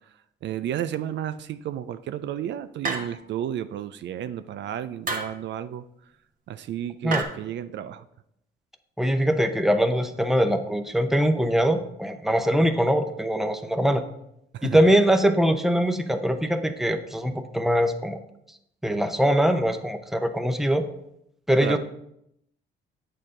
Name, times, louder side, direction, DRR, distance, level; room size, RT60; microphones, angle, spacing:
voice 1, 0.4-5.8 6.5-8.0 14.5-14.8 21.6-21.8, right 10 dB, 65° right, 12 dB, 0.4 m, -32 dB
sound 1, 2.8-3.4 5.0-5.4 7.1-7.2, right 3 dB, 45° right, 1.3 m, -30 dB
voice 2, 9.0-14.0 14.6-18.2 18.8-20.9 21.5-21.8, equal, ahead, 7 dB, 0.7 m, -22 dB
8.2 x 6.6 x 3.7 m, 0.78 s
cardioid pair, 90°, 20 cm